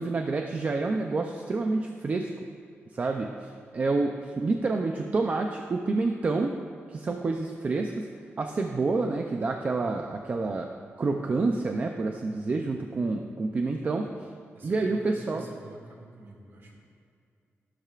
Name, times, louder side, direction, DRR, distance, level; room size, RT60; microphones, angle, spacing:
voice 1, 0.0-2.3 2.9-6.6 6.9-8.1 8.4-10.7 11.0-14.3 14.6-15.5, right 3 dB, 35° right, 3 dB, 0.5 m, -28 dB
voice 2, 14.5-16.8, right 2 dB, 50° right, -1 dB, 2.0 m, -48 dB
13.5 x 12.5 x 2.5 m, 2.4 s
wide cardioid pair, 180°, 5 cm